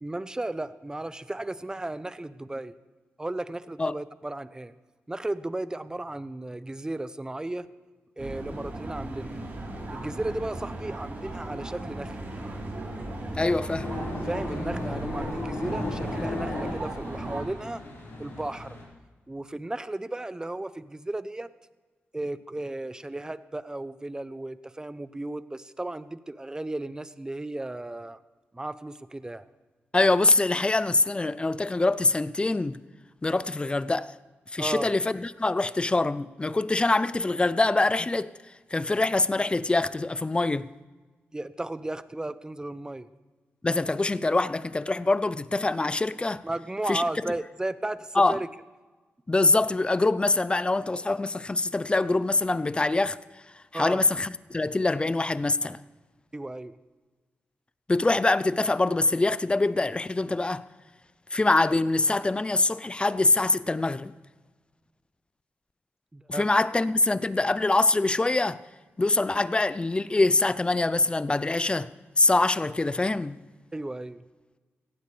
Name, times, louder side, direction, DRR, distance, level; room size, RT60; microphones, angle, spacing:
voice 1, 0.0-2.7 3.2-4.7 5.1-7.7 8.2-9.4 9.9-12.3 14.2-17.8 18.2-18.8 19.3-21.5 22.1-28.2 28.5-29.4 34.6-34.9 41.3-43.1 46.4-48.5 53.7-54.0 56.3-56.8 66.1-66.5 73.7-74.2, right 2 dB, 15° right, 0.6 m, -34 dB
sound 1, 8.2-17.4, right 2 dB, 50° right, 3.7 m, -36 dB
voice 2, 13.4-13.9 29.9-32.8 33.2-34.1 34.5-38.3 38.7-40.7 43.6-46.4 46.9-47.0 48.1-48.4 49.3-53.2 53.7-55.8 57.9-60.6 61.3-64.1 66.3-68.6 69.0-71.9 72.2-73.4, left 2 dB, 25° left, 0.5 m, -24 dB
sound 2, 13.8-18.8, left 2 dB, 80° left, 5.2 m, -36 dB
17.5 x 15.5 x 3.3 m
cardioid pair, 80°, 4 cm